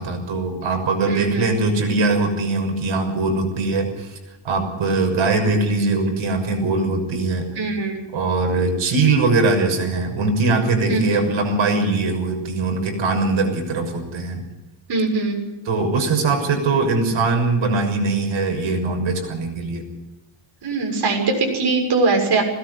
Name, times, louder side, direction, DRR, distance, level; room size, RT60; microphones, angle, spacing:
voice 1, 0.0-4.2 4.4-7.5 8.1-14.4 15.6-19.8, right 3 dB, 65° right, 4 dB, 6.4 m, -21 dB
voice 2, 1.1-1.5 7.6-7.9 10.9-11.3 14.9-15.4 20.6-22.4, right 3 dB, 50° right, 2 dB, 6.9 m, -21 dB
21.0 x 18.5 x 8.1 m, 1.1 s
cardioid pair, 140°, 49 cm